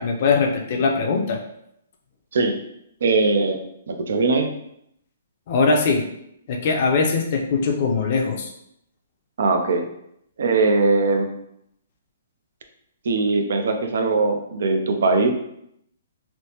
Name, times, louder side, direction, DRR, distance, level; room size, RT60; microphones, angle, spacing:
voice 1, 0.0-1.4 5.5-6.1 6.5-8.5, left 4 dB, 45° left, 2 dB, 0.4 m, -21 dB
voice 2, 3.0-3.6 3.9-4.5 9.4-9.9 10.4-11.3 13.1-15.3, right 3 dB, 70° right, 5 dB, 0.4 m, -20 dB
3.1 x 2.0 x 2.8 m, 0.76 s
hypercardioid pair, 150°, 0 cm